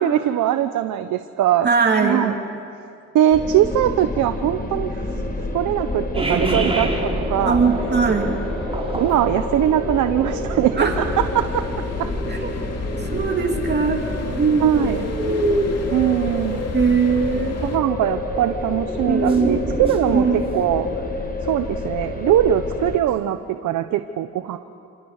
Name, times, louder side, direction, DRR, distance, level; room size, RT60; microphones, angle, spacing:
voice 1, 0.0-1.7 2.0-2.4 3.1-5.0 5.5-7.6 8.9-11.6 12.0-12.1 14.6-15.1 15.9-16.7 17.6-20.9 21.4-24.6, right 11 dB, 80° right, 9 dB, 1.0 m, -21 dB
voice 2, 1.6-2.3 7.5-8.4 10.8-10.9 12.3-12.5 13.1-14.0 14.4-14.8 15.2-15.8 16.7-17.8 19.1-19.6 20.1-20.5, right 5 dB, 35° right, 2 dB, 2.9 m, -20 dB
sound 1, 3.3-23.0, left 2 dB, 30° left, 4.6 m, -29 dB
sound 2, 6.1-21.1, right 1 dB, 20° right, 4.4 m, -29 dB
sound 3, 10.9-17.8, left 4 dB, 55° left, 3.1 m, -32 dB
29.5 x 28.0 x 6.7 m, 2.5 s
cardioid pair, 90°, 30 cm